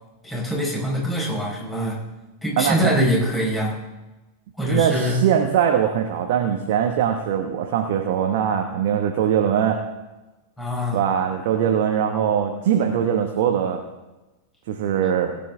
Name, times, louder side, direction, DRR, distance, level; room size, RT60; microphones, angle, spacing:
voice 1, 0.2-2.0 2.4-3.8 4.6-5.2 10.6-11.0, equal, 10° left, -4 dB, 4.9 m, -23 dB
voice 2, 2.6-2.9 4.7-9.8 10.9-13.8 14.7-15.3, right 8 dB, 50° right, 4 dB, 1.1 m, -21 dB
18.5 x 9.1 x 3.6 m, 1.1 s
figure-of-eight pair, 90°, 0 cm